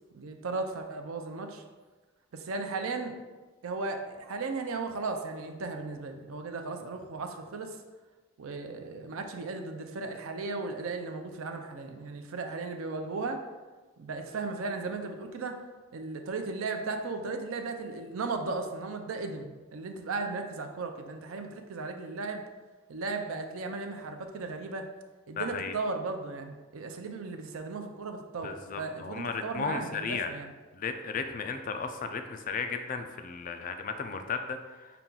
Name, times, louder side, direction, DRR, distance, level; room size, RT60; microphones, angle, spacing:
voice 1, 0.1-1.6 2.3-3.1 3.6-7.8 8.4-13.4 14.0-15.6 15.9-22.4 22.9-24.9 25.3-30.5, right 3 dB, 75° right, 5 dB, 0.5 m, -36 dB
voice 2, 25.4-25.8 28.4-30.3 30.7-35.0, left 5 dB, 40° left, 6 dB, 0.3 m, -35 dB
5.7 x 2.3 x 3.8 m, 1.2 s
head